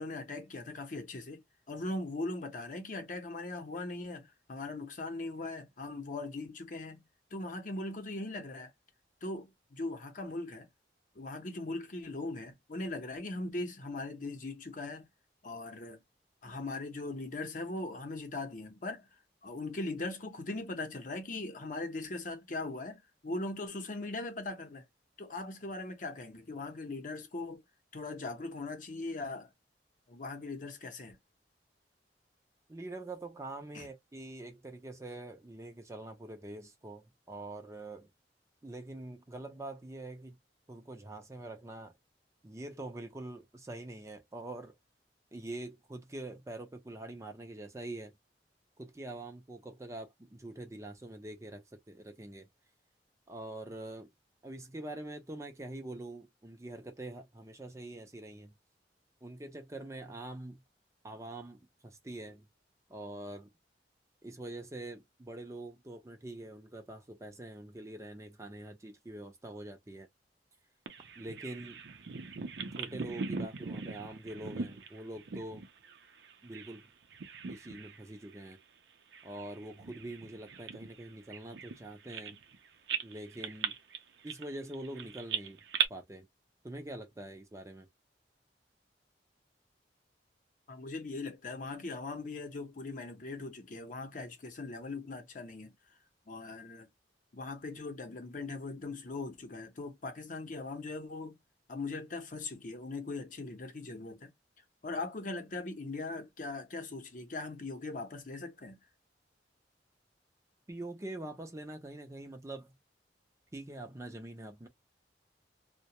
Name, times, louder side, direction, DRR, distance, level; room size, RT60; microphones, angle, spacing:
voice 1, 0.0-7.0 7.3-8.7 9.2-10.7 11.1-15.1 15.4-16.0 16.4-19.1 19.4-24.9 25.2-27.6 27.9-29.5 30.1-31.2 33.7-33.9 90.7-95.7 96.3-96.9 97.3-101.4 101.7-104.3 104.8-108.8, left 2 dB, 50° left, 0.7 m, -40 dB
voice 2, 32.7-38.1 38.6-40.4 40.7-41.9 42.4-44.8 45.3-48.1 48.8-52.5 53.3-54.1 54.4-58.5 59.2-60.6 61.0-62.5 62.9-63.5 64.2-70.1 71.2-71.8 72.8-75.6 76.4-76.9 77.5-78.6 79.2-82.4 83.0-83.8 84.2-85.6 85.9-86.3 86.6-87.9 110.7-112.7 113.5-114.7, right 2 dB, 15° right, 0.5 m, -44 dB
Bird vocalization bird call bird song, 70.9-76.8 77.1-78.0 78.3-78.5 79.1-82.6 82.9-85.9, right 6 dB, 75° right, 0.5 m, -39 dB
2.3 x 2.1 x 2.8 m
head